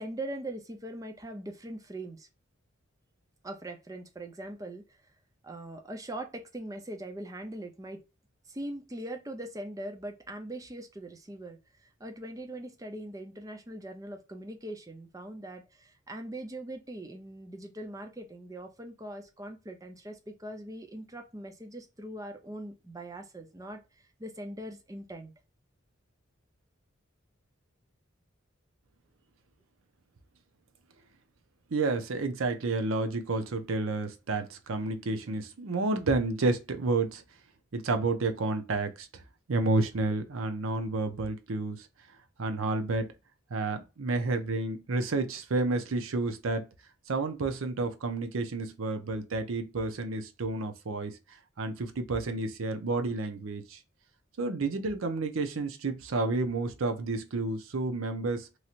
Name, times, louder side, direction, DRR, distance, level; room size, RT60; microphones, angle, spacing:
voice 1, 0.0-2.3 3.4-5.1 5.4-8.0 8.5-25.3, right 1 dB, 15° right, 0.5 m, -41 dB
voice 2, 31.7-37.2 37.7-39.2 39.5-41.9 42.4-43.1 43.5-46.7 47.1-51.1 51.6-53.8 54.4-58.5, right 3 dB, 80° right, 0.6 m, -30 dB
3.1 x 2.8 x 2.4 m
head